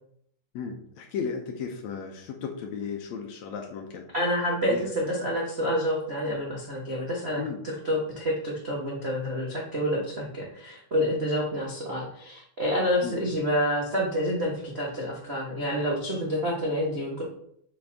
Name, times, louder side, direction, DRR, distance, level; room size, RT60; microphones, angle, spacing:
voice 1, 0.5-4.1 4.6-4.8 7.4-7.6 13.0-13.2, left 6 dB, 70° left, 3 dB, 1.8 m, -35 dB
voice 2, 4.1-7.4 7.8-17.2, equal, 85° right, -5 dB, 0.5 m, -28 dB
7.5 x 6.4 x 3.5 m, 0.70 s
omnidirectional pair, 3.8 m